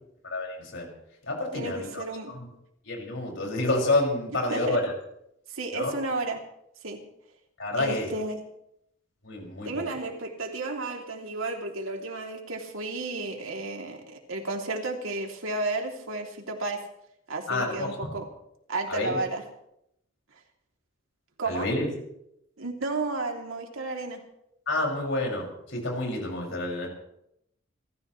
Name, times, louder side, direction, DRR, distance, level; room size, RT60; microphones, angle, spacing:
voice 1, 0.2-0.9 1.2-2.5 2.8-4.9 5.7-6.0 7.6-8.1 9.2-9.9 17.5-18.1 18.9-19.2 21.5-21.9 24.7-26.9, left 2 dB, 65° left, 0 dB, 5.9 m, -29 dB
voice 2, 1.5-2.3 4.5-4.8 5.5-6.4 6.8-7.0 7.8-8.4 9.6-16.8 17.3-18.2 18.7-19.4 21.4-21.7 22.6-24.2, right 2 dB, 85° right, 2 dB, 2.8 m, -32 dB
29.0 x 14.5 x 3.2 m, 0.78 s
head